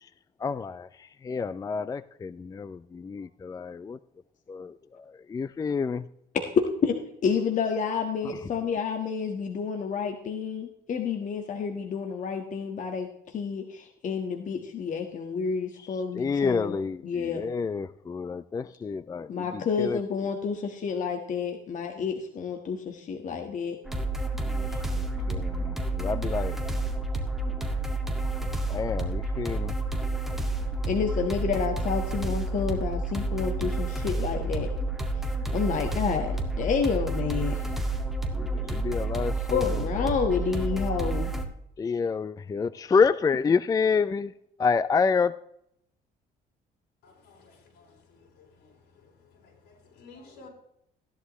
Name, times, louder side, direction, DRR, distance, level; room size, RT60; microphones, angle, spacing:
voice 1, 0.4-0.9 1.2-4.0 4.5-4.7 5.3-6.0 16.2-19.4 19.8-20.0 24.5-24.6 25.3-26.6 28.7-29.7 38.4-39.3 41.8-44.3 44.6-45.3, left 5 dB, 20° left, 15 dB, 0.4 m, -28 dB
voice 2, 6.8-16.7 17.0-17.4 19.3-23.8 25.2-25.3 30.9-34.7 35.5-37.6 39.5-41.3, left 6 dB, 50° left, 4 dB, 1.5 m, -29 dB
sound 1, 23.9-41.4, right 2 dB, ahead, 1.9 m, -30 dB
voice 3, 47.0-48.8 49.0-50.5, left 3 dB, 80° left, 0 dB, 5.2 m, -54 dB
16.0 x 11.0 x 3.1 m, 0.75 s
cardioid pair, 110°, 17 cm